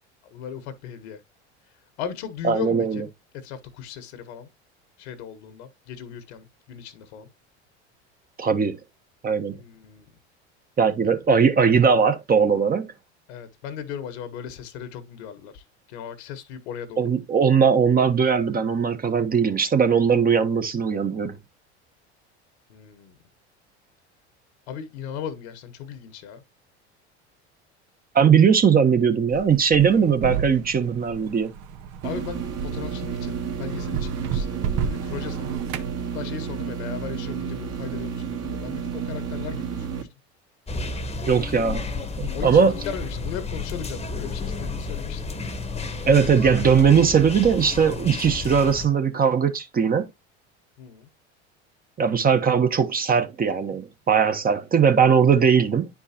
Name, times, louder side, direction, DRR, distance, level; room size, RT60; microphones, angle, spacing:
voice 1, 0.2-1.2 2.0-3.1 3.3-4.5 5.0-7.3 9.5-10.1 13.3-17.2 22.7-23.2 24.7-26.4 32.0-40.1 42.3-45.4 50.8-51.1, left 8 dB, 70° left, 1.5 m, -37 dB
voice 2, 2.4-3.0 8.4-8.8 9.2-9.5 10.8-12.9 17.0-21.4 28.1-31.5 41.3-41.9 42.2-42.7 46.1-50.1 52.0-55.9, right 6 dB, 25° right, 1.1 m, -19 dB
sound 1, 29.3-35.9, right 7 dB, 65° right, 1.1 m, -32 dB
sound 2, 32.0-40.0, right 6 dB, 45° right, 2.0 m, -31 dB
sound 3, 40.7-48.9, left 3 dB, 20° left, 1.2 m, -31 dB
9.9 x 4.7 x 2.9 m
hypercardioid pair, 80°, 34 cm